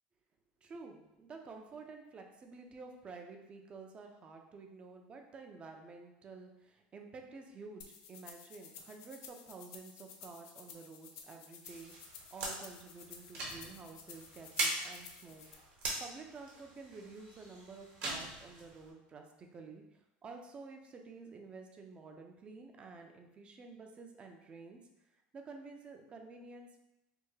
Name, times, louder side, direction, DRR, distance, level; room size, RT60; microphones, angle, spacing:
voice 1, 0.6-15.5 16.0-24.8 25.1-26.9, right 4 dB, 30° right, 3 dB, 0.4 m, -51 dB
sound 1, 7.8-15.5, left 6 dB, 75° left, 0.4 m, -54 dB
sound 2, 11.6-18.9, right 2 dB, 60° right, 1.0 m, -42 dB
3.4 x 2.2 x 3.1 m, 0.89 s
supercardioid pair, 120°, 4 cm